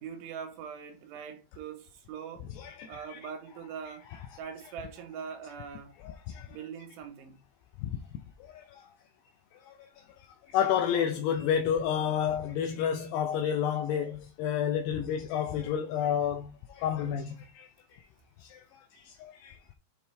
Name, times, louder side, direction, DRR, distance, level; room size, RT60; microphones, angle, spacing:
voice 1, 0.0-2.5 2.9-4.1 4.4-5.9 6.5-7.4, right 7 dB, 75° right, 3.4 m, -42 dB
voice 2, 2.6-3.2 6.0-6.6 7.8-8.0 8.4-8.9 9.5-9.9 10.2-18.1 18.4-19.6, left 9 dB, 80° left, 2.6 m, -31 dB
9.4 x 4.4 x 3.4 m
omnidirectional pair, 5.0 m